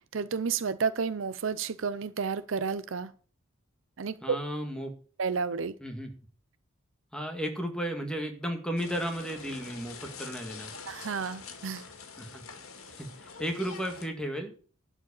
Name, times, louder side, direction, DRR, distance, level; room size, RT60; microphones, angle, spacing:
voice 1, 0.1-3.1 4.0-4.4 5.2-5.8 10.9-11.8, right 5 dB, 60° right, 0.5 m, -31 dB
voice 2, 4.2-4.9 5.8-6.1 7.1-10.7 12.2-12.4 13.0-14.6, equal, 5° left, 1.8 m, -34 dB
sound 1, 8.8-14.1, left 5 dB, 80° left, 2.0 m, -45 dB
11.5 x 5.0 x 8.5 m
head